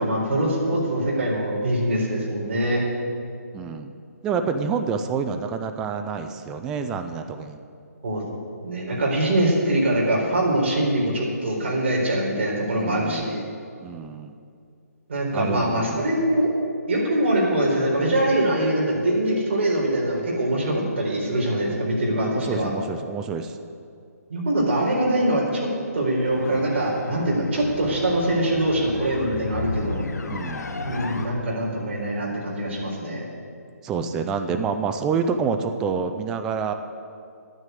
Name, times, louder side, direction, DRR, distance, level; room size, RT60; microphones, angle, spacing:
voice 1, 0.0-2.8 8.0-8.2 8.6-13.4 15.1-16.5 16.9-22.7 24.3-30.0 30.8-33.3, right 1 dB, 45° right, -3 dB, 4.1 m, -23 dB
voice 2, 3.5-3.9 4.2-7.6 12.7-13.4 13.8-14.3 15.3-16.1 22.4-23.6 30.3-30.7 33.8-36.7, right 5 dB, 5° right, 7 dB, 0.3 m, -28 dB
sound 1, 26.2-31.2, left 2 dB, 80° left, 1.4 m, -33 dB
10.5 x 9.7 x 8.3 m, 2.3 s
hypercardioid pair, 165°, 9 cm